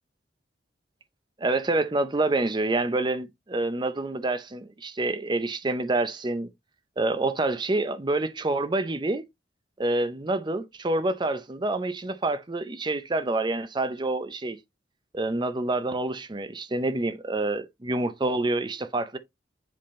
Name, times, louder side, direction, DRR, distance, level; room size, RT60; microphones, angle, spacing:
voice 1, 1.4-6.5 7.0-9.2 9.8-14.6 15.1-19.2, right 2 dB, 25° right, 0.5 m, -27 dB
7.7 x 3.6 x 4.2 m
head